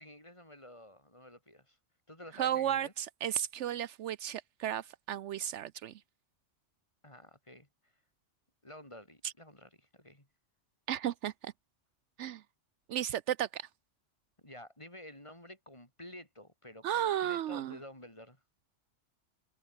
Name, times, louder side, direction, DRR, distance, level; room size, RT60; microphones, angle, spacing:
voice 1, 0.0-1.8 2.1-2.9 7.0-7.9 8.6-10.3 14.4-18.4, left 1 dB, 25° left, 5.0 m, -51 dB
voice 2, 2.4-6.0 10.9-11.5 12.2-12.4 12.9-13.7 16.8-17.8, right 10 dB, 75° right, 0.9 m, -34 dB
omnidirectional pair, 1.2 m